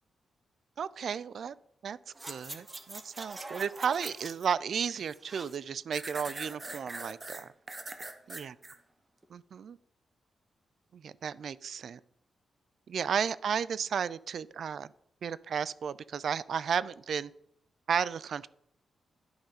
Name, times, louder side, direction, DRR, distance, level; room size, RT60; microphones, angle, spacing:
voice 1, 0.8-1.5 1.8-7.5 8.3-8.5 9.3-9.8 10.9-12.0 12.9-14.9 15.2-17.3 17.9-18.5, right 7 dB, 65° right, 18 dB, 0.3 m, -33 dB
sound 1, 2.2-4.5 4.8-5.6 5.9-8.8 9.2-9.3, right 2 dB, 25° right, 0.8 m, -43 dB
11.5 x 5.0 x 4.0 m, 0.73 s
cardioid pair, 100°, 0 cm